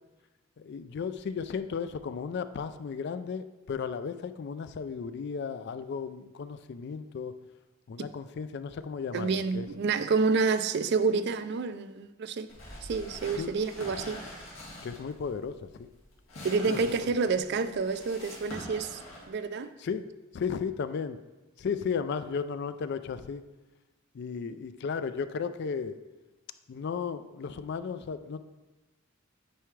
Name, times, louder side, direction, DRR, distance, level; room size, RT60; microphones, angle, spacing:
voice 1, 0.6-7.3 7.9-9.7 13.4-13.5 14.8-15.9 16.7-16.8 19.8-20.1 20.3-21.2 21.6-23.4 24.1-26.0 26.7-28.4, left 6 dB, 55° left, 0.3 m, -34 dB
voice 2, 9.1-12.5 12.8-14.2 16.4-19.0 19.3-19.7, right 4 dB, 55° right, 0.4 m, -28 dB
sound 1, 12.5-19.3, left 1 dB, 75° left, 2.1 m, -45 dB
9.2 x 4.6 x 3.2 m
head